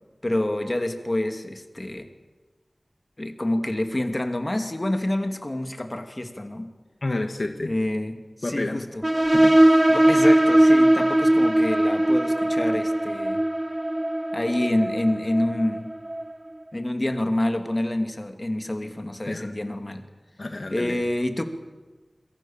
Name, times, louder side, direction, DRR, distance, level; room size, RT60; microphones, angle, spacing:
voice 1, 0.2-2.1 3.2-6.7 7.7-9.0 9.9-13.4 14.3-15.9 16.7-20.0 20.7-21.4, left 1 dB, 35° left, 6 dB, 2.6 m, -27 dB
voice 2, 7.0-7.7 8.4-8.8 9.3-9.8 19.3-19.5 20.4-21.0, left 2 dB, 65° left, 5 dB, 1.9 m, -30 dB
sound 1, 9.0-16.3, right 1 dB, 25° right, 0.8 m, -20 dB
26.5 x 23.0 x 7.4 m, 1.3 s
wide cardioid pair, 60°, 0 cm